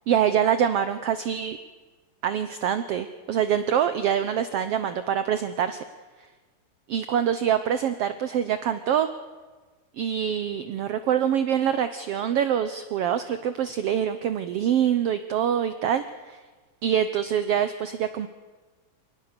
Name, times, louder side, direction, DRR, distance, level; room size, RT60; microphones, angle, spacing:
voice 1, 0.1-1.6 2.2-5.8 6.9-9.1 9.9-16.4 16.8-18.3, right 9 dB, 70° right, 11 dB, 1.5 m, -25 dB
27.5 x 19.0 x 6.9 m, 1.3 s
omnidirectional pair, 3.5 m